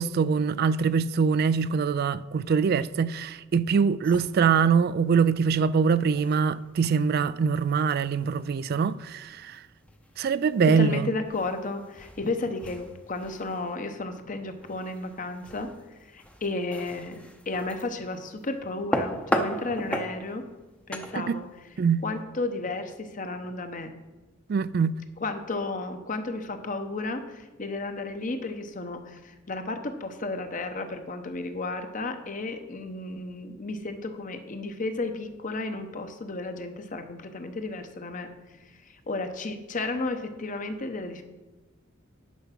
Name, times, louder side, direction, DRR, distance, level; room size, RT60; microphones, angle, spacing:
voice 1, 0.0-9.6 10.2-11.1 21.1-21.4 21.8-22.0 24.5-25.0, right 6 dB, 50° right, 0.3 m, -23 dB
sound 1, 4.0-22.2, equal, 5° left, 0.7 m, -38 dB
voice 2, 10.8-15.7 16.0-20.4 20.9-21.5 22.0-23.9 25.2-38.3 38.9-41.2, left 2 dB, 40° left, 0.9 m, -33 dB
10.5 x 5.8 x 5.9 m
head